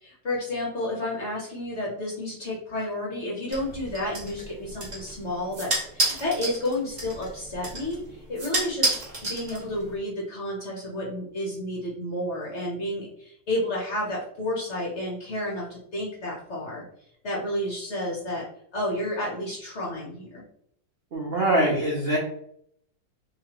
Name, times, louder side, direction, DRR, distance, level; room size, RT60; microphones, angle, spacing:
voice 1, 0.0-9.0 9.2-16.8 17.2-18.5 18.7-20.4, left 1 dB, 50° left, -4 dB, 0.8 m, -31 dB
sound 1, 3.5-10.0, right 2 dB, 30° right, 0.8 m, -31 dB
voice 2, 21.1-22.2, right 1 dB, 75° right, -2 dB, 0.5 m, -23 dB
3.4 x 2.9 x 2.9 m, 0.69 s
omnidirectional pair, 2.0 m